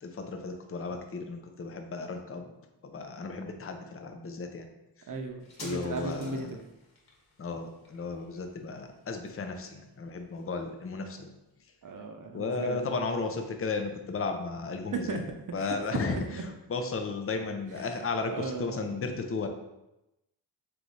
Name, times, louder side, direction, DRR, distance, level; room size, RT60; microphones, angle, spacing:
voice 1, 0.0-2.5 2.8-4.7 5.6-6.6 7.4-11.3 12.3-15.2 15.5-16.4 16.7-19.5, left 4 dB, 30° left, 5 dB, 0.6 m, -34 dB
voice 2, 5.1-6.6 11.8-13.0 14.9-15.2 15.6-15.8 16.1-16.4 17.8-17.9 18.3-18.8, right 4 dB, 45° right, 4 dB, 0.8 m, -36 dB
sound 1, 5.4-12.5 12.8-12.9, left 2 dB, 60° left, 1.4 m, -54 dB
3.3 x 3.1 x 4.0 m, 0.92 s
cardioid pair, 50°, 44 cm